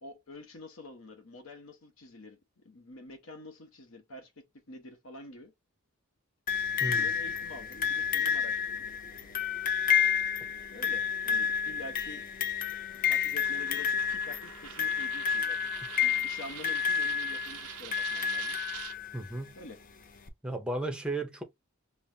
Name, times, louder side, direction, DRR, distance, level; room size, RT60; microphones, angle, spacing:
voice 1, 0.0-4.3 4.7-5.5 6.8-8.9 10.7-12.3 12.9-15.6 16.0-18.6 19.5-19.8, left 2 dB, 65° left, 1.0 m, -47 dB
sound 1, 6.5-19.3 20.3-20.4, left 7 dB, 40° left, 0.5 m, -30 dB
Coin (dropping), 13.4-19.0, right 12 dB, 85° right, 0.5 m, -45 dB
voice 2, 19.1-19.5 20.4-21.4, right 2 dB, 5° right, 0.6 m, -34 dB
5.4 x 2.0 x 2.7 m
head